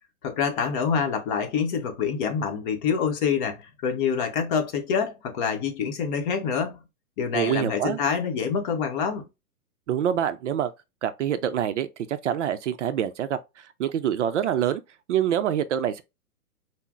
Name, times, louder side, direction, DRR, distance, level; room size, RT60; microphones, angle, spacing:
voice 1, 0.2-6.8 7.2-9.2, left 6 dB, 35° left, 0.8 m, -26 dB
voice 2, 7.3-8.0 9.9-10.7 11.0-13.4 13.8-14.8 15.1-16.0, right 10 dB, 55° right, 0.5 m, -25 dB
5.4 x 2.0 x 2.3 m
hypercardioid pair, 120°, 44 cm